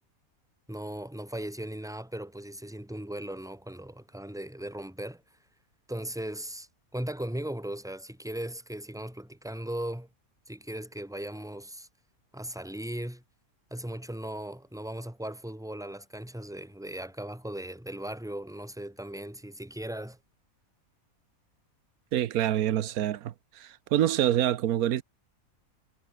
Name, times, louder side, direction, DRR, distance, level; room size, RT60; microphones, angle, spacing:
voice 1, 0.7-5.2 5.9-10.1 10.5-11.9 12.3-13.2 13.7-20.2, right 1 dB, ahead, 2.4 m, -38 dB
voice 2, 22.1-25.0, right 12 dB, 90° right, 1.3 m, -26 dB
omnidirectional pair, 1.5 m